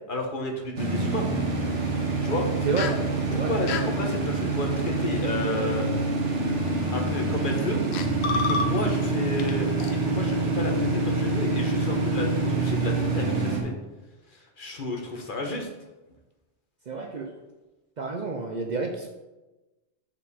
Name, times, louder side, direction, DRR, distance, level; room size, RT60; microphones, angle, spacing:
voice 1, 0.1-1.3 2.2-2.5 3.3-5.9 6.9-7.8 8.3-9.7 10.0-13.7 14.6-15.7, left 2 dB, 50° left, 2 dB, 1.1 m, -31 dB
sound 1, 0.8-13.6, right 3 dB, 90° right, 1.6 m, -26 dB
sound 2, 2.8-3.0 3.7-3.9 5.6-5.8 6.6-6.9 7.6-7.7 7.9-9.1 9.4-9.5 9.8-9.9, left 4 dB, 70° left, 0.9 m, -29 dB
voice 2, 16.9-17.3 18.0-19.1, right 4 dB, 50° right, 3 dB, 0.6 m, -29 dB
7.1 x 5.1 x 4.2 m, 1.1 s
omnidirectional pair, 1.2 m